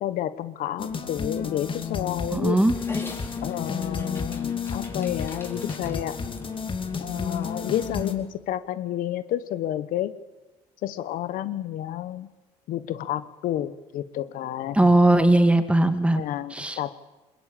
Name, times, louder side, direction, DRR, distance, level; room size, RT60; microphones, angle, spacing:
voice 1, 0.0-2.6 3.4-6.2 7.0-10.1 10.8-12.3 12.7-14.9 16.2-17.0, left 12 dB, 70° left, 13 dB, 1.1 m, -30 dB
sound 1, 0.8-8.1, left 5 dB, 35° left, 2.9 m, -31 dB
voice 2, 2.3-2.7 14.8-16.2 16.5-16.8, right 1 dB, 10° right, 9 dB, 2.2 m, -19 dB
Dog, 2.7-8.1, left 2 dB, 15° left, 5.2 m, -43 dB
21.5 x 21.0 x 8.7 m, 1.1 s
supercardioid pair, 75°, 14 cm